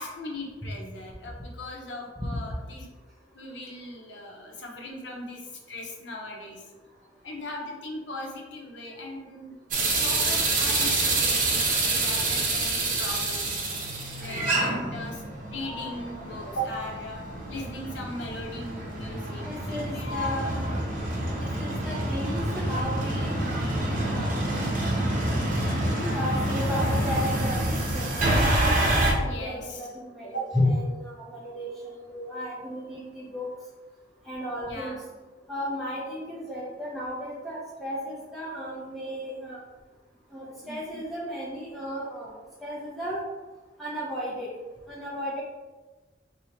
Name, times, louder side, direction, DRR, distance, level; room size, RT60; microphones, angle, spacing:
voice 1, 0.0-2.9 3.3-6.6 7.2-9.5 10.0-13.7 14.2-17.2 17.5-20.2 25.9-26.3 29.2-29.9 30.2-30.4 34.4-35.0 40.6-41.0, left 1 dB, 80° left, 0 dB, 0.8 m, -39 dB
sound 1, 9.7-29.1, right 2 dB, 50° right, 0.8 m, -27 dB
voice 2, 19.4-20.8 21.4-24.4 25.7-28.1 29.2-33.5 34.3-35.0 35.5-39.6 40.3-42.3 42.6-43.2 43.8-44.5 44.9-45.4, left 1 dB, ahead, -8 dB, 0.6 m, -33 dB
3.2 x 2.7 x 4.2 m, 1.2 s
head